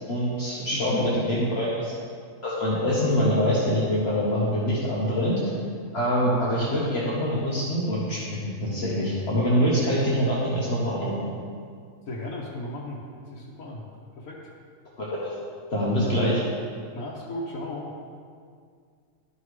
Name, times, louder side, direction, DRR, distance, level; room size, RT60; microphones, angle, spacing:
voice 1, 0.1-1.9 2.4-5.4 5.9-11.2 15.0-15.3 15.7-16.4, equal, 50° left, -7 dB, 1.4 m, -24 dB
voice 2, 0.9-1.4 12.1-13.8 14.2-14.5 16.9-17.9, left 1 dB, 85° left, -5 dB, 1.4 m, -35 dB
12.0 x 5.5 x 3.2 m, 2.1 s
omnidirectional pair, 1.4 m